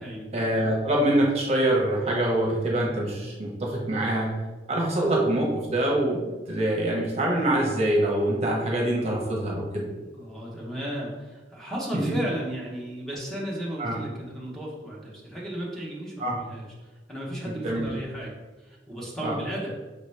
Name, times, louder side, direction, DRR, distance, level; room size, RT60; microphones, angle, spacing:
voice 1, 0.3-4.3 4.7-9.8 12.1-12.2 13.8-13.9 16.2-16.4 17.6-17.9 19.2-19.4, right 1 dB, 35° right, -2 dB, 0.8 m, -25 dB
voice 2, 10.0-19.7, equal, ahead, -5 dB, 0.8 m, -34 dB
5.3 x 2.8 x 3.3 m, 1.2 s
head